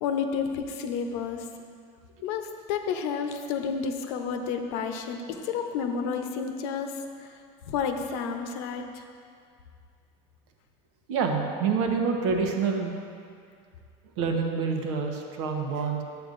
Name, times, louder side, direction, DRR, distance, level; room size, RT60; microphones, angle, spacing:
voice 1, 0.0-1.4 2.2-6.9 7.6-8.8, left 6 dB, 70° left, 5 dB, 0.8 m, -30 dB
voice 2, 11.1-13.0 14.2-16.0, right 5 dB, 85° right, 3 dB, 1.0 m, -27 dB
11.5 x 7.9 x 2.6 m, 2.3 s
supercardioid pair, 140°, 15 cm